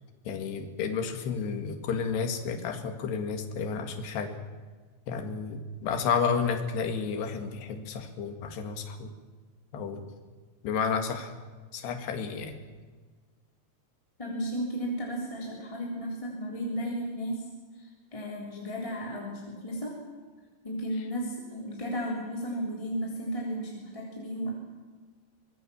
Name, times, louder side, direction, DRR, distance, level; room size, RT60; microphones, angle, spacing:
voice 1, 0.3-4.4 5.1-9.1 9.7-10.0 10.6-11.3 11.7-12.5, left 6 dB, 70° left, 5 dB, 3.9 m, -31 dB
voice 2, 14.2-17.5 17.8-19.9 20.6-24.5, equal, 10° left, -3 dB, 2.9 m, -34 dB
25.0 x 21.0 x 7.1 m, 1.4 s
omnidirectional pair, 5.2 m